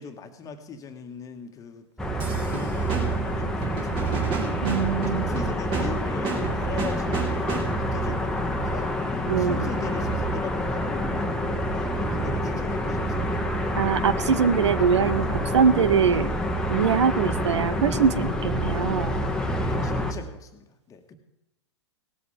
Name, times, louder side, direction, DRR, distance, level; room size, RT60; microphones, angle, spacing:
voice 1, 0.0-1.9 2.4-4.3 5.1-11.3 11.7-13.5 19.6-21.1, left 5 dB, 20° left, 6 dB, 1.6 m, -40 dB
sound 1, 2.0-20.1, equal, 5° left, 1.4 m, -27 dB
sound 2, 2.2-8.0, right 5 dB, 35° right, 3.1 m, -33 dB
voice 2, 4.6-5.2 9.3-9.6 13.8-15.3 15.5-16.3 16.7-19.2, right 7 dB, 70° right, 17 dB, 0.8 m, -22 dB
17.5 x 14.0 x 3.4 m, 0.94 s
figure-of-eight pair, 105°, 15 cm